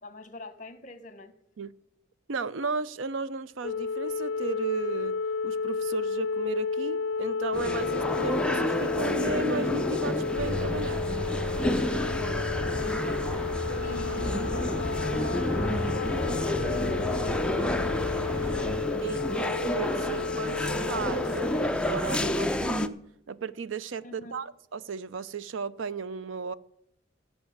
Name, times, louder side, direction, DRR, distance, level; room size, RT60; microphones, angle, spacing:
voice 1, 0.0-1.3 12.0-13.3 13.8-17.3 17.8-19.4 24.0-24.3, left 2 dB, 40° left, 1.1 m, -44 dB
voice 2, 2.3-5.2 5.4-11.0 19.0-22.9 23.3-26.5, right 5 dB, 85° right, 0.5 m, -35 dB
sound 1, 3.6-21.7, left 4 dB, 70° left, 0.4 m, -32 dB
sound 2, 7.5-22.9, left 1 dB, 5° left, 0.4 m, -30 dB
sound 3, 10.3-18.7, left 1 dB, 55° right, 4.4 m, -34 dB
14.0 x 5.6 x 9.4 m
head